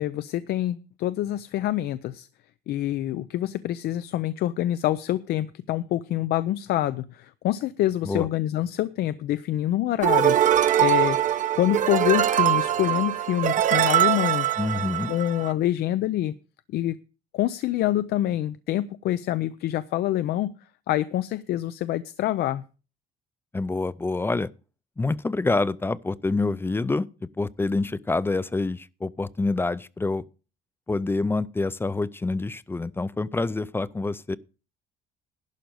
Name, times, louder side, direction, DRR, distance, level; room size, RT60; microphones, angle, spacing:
voice 1, 0.0-2.3 2.7-10.4 10.8-14.5 15.1-16.3 16.7-17.0 17.3-20.5 20.9-22.6, left 13 dB, 70° left, 0.5 m, -26 dB
sound 1, 10.0-15.5, right 11 dB, 50° right, 0.8 m, -22 dB
voice 2, 14.6-15.1 23.5-24.5 25.0-30.2 30.9-34.4, left 3 dB, 15° left, 0.4 m, -27 dB
11.5 x 5.2 x 7.7 m
cardioid pair, 110°, 17 cm